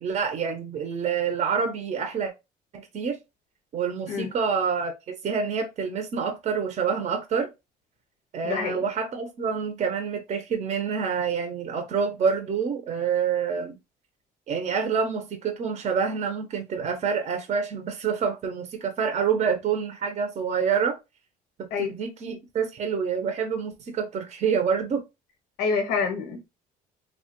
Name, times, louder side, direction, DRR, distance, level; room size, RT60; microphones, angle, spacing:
voice 1, 0.0-2.3 2.7-3.2 3.7-4.9 5.2-7.5 8.3-13.8 14.5-21.0 21.8-25.0, right 6 dB, 45° right, 0.6 m, -27 dB
voice 2, 8.4-8.9 21.7-21.9 25.6-26.5, left 5 dB, 90° left, 0.6 m, -27 dB
3.0 x 2.1 x 2.8 m
cardioid pair, 110°, 17 cm